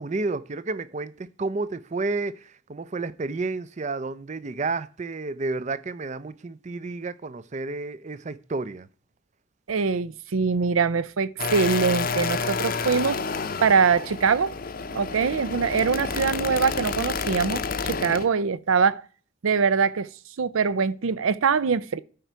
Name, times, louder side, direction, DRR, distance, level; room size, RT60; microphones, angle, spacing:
voice 1, 0.0-8.9, right 3 dB, 35° right, 0.5 m, -31 dB
voice 2, 9.7-13.2 13.6-14.5 14.9-19.0 19.4-20.1 20.4-22.0, right 5 dB, 80° right, 0.5 m, -23 dB
sound 1, 11.4-18.3, left 4 dB, 45° left, 0.6 m, -29 dB
12.5 x 5.0 x 4.6 m
head